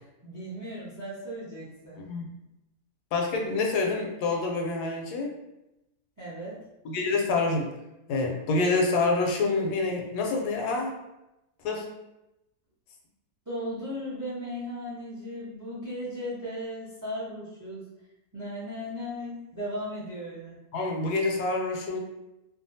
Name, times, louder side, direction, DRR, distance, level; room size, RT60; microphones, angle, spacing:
voice 1, 0.2-2.0 6.2-6.6 13.5-17.8 18.3-20.6, equal, 25° right, -7 dB, 0.4 m, -36 dB
voice 2, 2.0-2.3 3.1-5.3 6.8-7.7 8.1-10.9 11.6-11.9 20.7-22.0, left 3 dB, 80° left, 1 dB, 1.1 m, -27 dB
2.7 x 2.3 x 2.6 m, 0.92 s
omnidirectional pair, 1.7 m